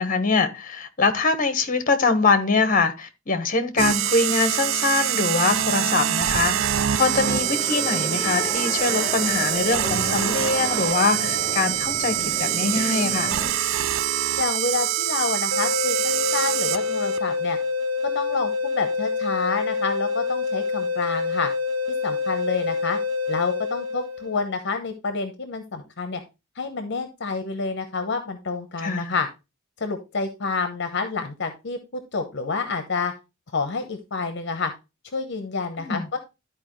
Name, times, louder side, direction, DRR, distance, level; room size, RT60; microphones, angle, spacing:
voice 1, 0.0-13.4 28.8-29.1 35.8-36.1, left 4 dB, 40° left, 1.1 m, -23 dB
sound 1, 3.8-17.2, right 11 dB, 65° right, 0.4 m, -25 dB
sound 2, 7.2-13.5, equal, 15° right, 3.4 m, -32 dB
voice 2, 14.4-17.6 18.1-21.5 21.9-23.0 23.3-26.2 26.6-29.3 29.8-33.1 33.5-34.7 35.1-36.2, left 4 dB, 55° left, 0.9 m, -28 dB
sound 3, 15.5-24.5, left 4 dB, 90° right, 0.8 m, -26 dB
12.5 x 4.5 x 3.0 m
head